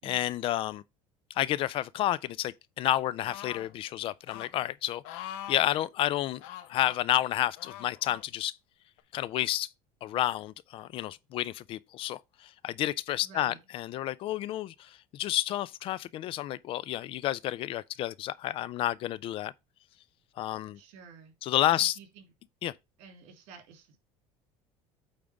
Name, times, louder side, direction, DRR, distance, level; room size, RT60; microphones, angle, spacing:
voice 1, 0.0-0.8 1.4-6.4 6.7-8.5 9.1-9.7 10.0-19.5 20.4-20.8 21.4-21.9 22.6-22.7, left 13 dB, 45° left, 0.4 m, -30 dB
sound 1, 3.2-3.7 4.3-4.5 5.0-5.7 6.4-7.0 7.6-8.2 9.0-9.1, left 11 dB, 85° left, 1.0 m, -42 dB
voice 2, 13.2-13.6 20.7-21.3 21.7-22.3 23.0-24.0, right 5 dB, 70° right, 3.0 m, -51 dB
8.7 x 3.6 x 5.1 m
cardioid pair, 145°, 13 cm